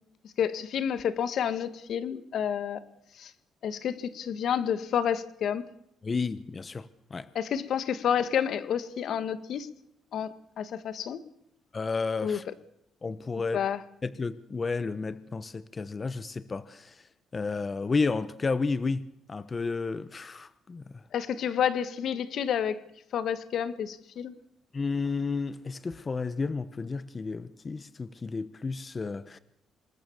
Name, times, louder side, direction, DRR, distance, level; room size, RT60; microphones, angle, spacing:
voice 1, 0.4-2.8 3.2-3.3 3.6-5.6 7.4-9.7 10.1-11.2 12.2-12.4 13.5-13.8 21.1-22.8 23.1-24.3, left 8 dB, 70° left, 1.9 m, -29 dB
voice 2, 6.0-7.3 11.7-12.4 13.0-13.6 14.0-17.0 17.3-21.0 24.7-29.4, left 4 dB, 30° left, 1.2 m, -32 dB
26.5 x 20.5 x 7.3 m
cardioid pair, 90°, 0 cm